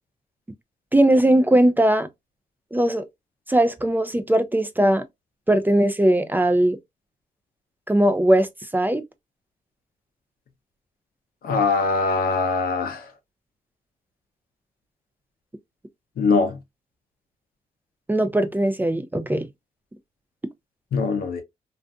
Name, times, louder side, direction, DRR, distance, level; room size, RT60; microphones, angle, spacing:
voice 1, 0.9-2.1 2.7-3.1 3.5-5.0 5.5-6.8 7.9-8.5 8.7-9.0 18.1-19.5, right 1 dB, 10° right, 0.4 m, -19 dB
voice 2, 11.4-13.0 16.2-16.6 20.9-21.4, left 4 dB, 80° left, 0.7 m, -22 dB
2.5 x 2.4 x 2.2 m
cardioid pair, 65°, 15 cm